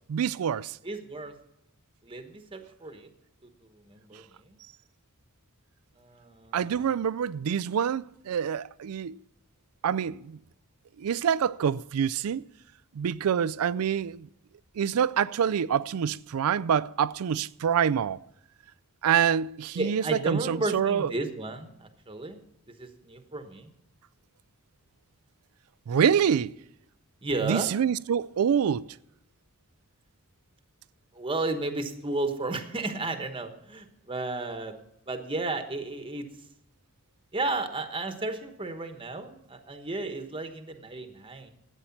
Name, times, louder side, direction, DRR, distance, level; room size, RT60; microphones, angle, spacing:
voice 1, 0.1-0.8 6.5-9.2 9.8-10.4 11.0-12.4 13.0-14.3 14.8-18.2 19.0-21.1 25.9-26.5 27.4-28.9, right 8 dB, 75° right, 0.4 m, -26 dB
voice 2, 0.8-1.3 2.0-3.1 3.4-4.6 6.0-7.0 19.7-22.4 22.7-23.7 27.2-27.7 31.1-34.8 35.1-36.3 37.3-41.5, right 2 dB, 25° right, 1.1 m, -33 dB
12.5 x 9.1 x 5.8 m
head